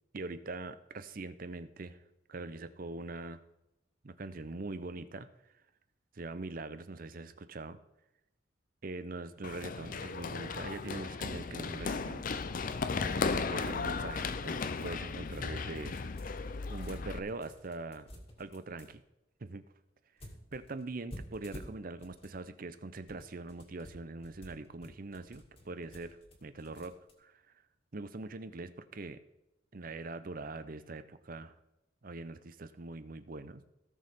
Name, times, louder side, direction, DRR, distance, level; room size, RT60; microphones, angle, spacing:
voice 1, 0.1-2.0 2.3-3.4 4.0-5.3 6.1-7.8 8.8-12.2 13.0-15.9 16.7-18.1 18.4-19.0 19.4-19.6 20.5-27.3 27.9-29.2 29.7-31.5 32.0-33.6, right 3 dB, 45° right, 12 dB, 0.6 m, -42 dB
Run, 9.4-17.2, left 4 dB, 45° left, 0.5 m, -36 dB
sound 1, 15.9-16.4 16.7-18.9 20.2-22.4 22.9-27.1, equal, 30° left, 2.3 m, -51 dB
17.5 x 6.6 x 3.6 m, 0.90 s
head